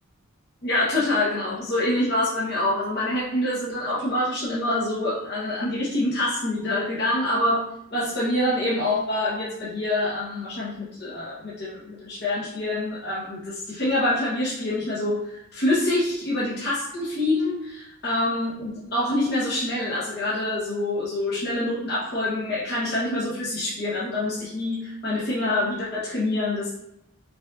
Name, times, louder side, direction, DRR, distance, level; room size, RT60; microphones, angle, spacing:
voice 1, 0.6-26.8, left 1 dB, 50° left, -8 dB, 0.9 m, -26 dB
5.1 x 2.5 x 2.3 m, 0.84 s
head